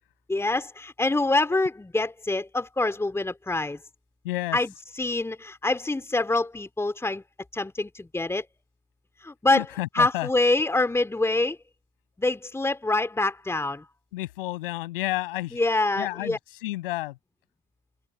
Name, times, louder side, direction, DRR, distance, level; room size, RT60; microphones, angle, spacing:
voice 1, 0.3-3.8 4.5-7.2 7.5-8.5 9.2-9.6 9.9-11.6 12.2-13.8 15.5-16.4, left 2 dB, 10° left, 3.4 m, -25 dB
voice 2, 4.2-4.6 9.5-10.3 14.1-15.6 15.9-17.2, left 17 dB, 65° left, 7.7 m, -31 dB
open air
figure-of-eight pair, 75°, 30 cm